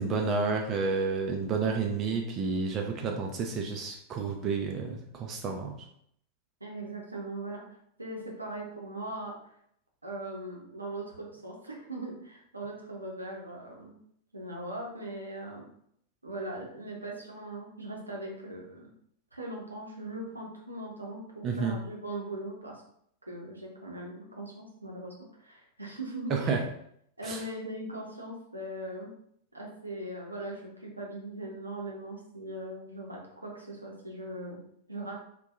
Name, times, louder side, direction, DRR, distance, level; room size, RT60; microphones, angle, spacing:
voice 1, 0.0-5.8 21.4-21.8 26.3-26.6 27.2-27.4, right 4 dB, 30° right, 2 dB, 0.3 m, -30 dB
voice 2, 6.6-9.5 10.0-14.0 14.3-15.6 16.2-18.9 19.3-22.8 23.3-26.6 27.2-29.1 29.5-34.6 34.9-35.2, right 1 dB, 85° right, -1 dB, 0.6 m, -40 dB
2.6 x 2.2 x 2.4 m, 0.69 s
figure-of-eight pair, 90°, 0 cm